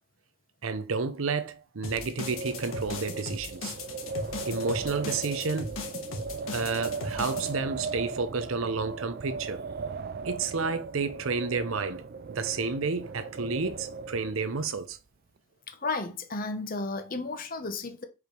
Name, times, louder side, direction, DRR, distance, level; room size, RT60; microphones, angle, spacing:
voice 1, 0.6-3.7 4.5-5.8 6.5-9.6 10.2-15.0, right 4 dB, 80° right, 0.8 m, -31 dB
sound 1, 1.8-7.5, left 2 dB, 85° left, 1.6 m, -38 dB
Wind, 2.1-14.7, right 4 dB, 50° right, 0.4 m, -37 dB
voice 2, 15.7-18.0, left 3 dB, 45° left, 1.0 m, -33 dB
4.9 x 4.8 x 5.2 m
head